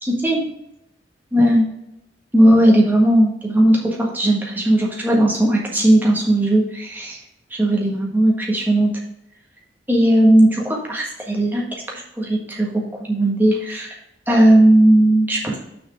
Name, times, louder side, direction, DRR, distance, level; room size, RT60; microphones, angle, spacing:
voice 1, 0.0-0.4 1.3-1.6 2.3-7.2 7.5-8.9 9.9-12.7 13.1-13.9 14.3-15.6, right 1 dB, 10° right, -2 dB, 1.5 m, -16 dB
6.2 x 4.8 x 6.3 m, 0.85 s
head